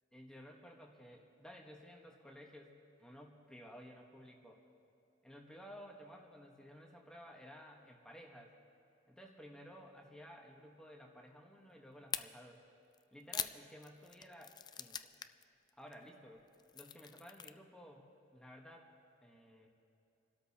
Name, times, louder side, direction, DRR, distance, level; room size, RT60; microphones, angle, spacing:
voice 1, 0.1-2.7 3.0-4.6 5.2-8.5 9.1-12.6 13.1-15.5 15.8-16.4 16.7-18.9 19.2-19.7, equal, 5° left, 0 dB, 1.1 m, -55 dB
sound 1, 12.1-12.2 12.9-15.4 15.7-15.9 16.4-17.5, left 8 dB, 20° left, 0.3 m, -42 dB
30.0 x 12.5 x 2.8 m, 2.7 s
head